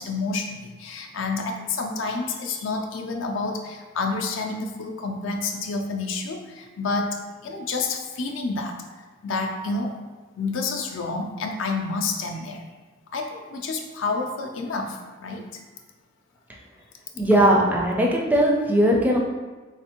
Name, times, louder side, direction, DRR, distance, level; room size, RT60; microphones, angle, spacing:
voice 1, 0.0-8.8 9.2-10.0 10.4-12.6 13.1-15.4, left 3 dB, 65° left, 3 dB, 0.4 m, -29 dB
voice 2, 17.2-19.2, right 1 dB, 10° right, -2 dB, 0.4 m, -19 dB
3.4 x 3.2 x 2.9 m, 1.3 s
head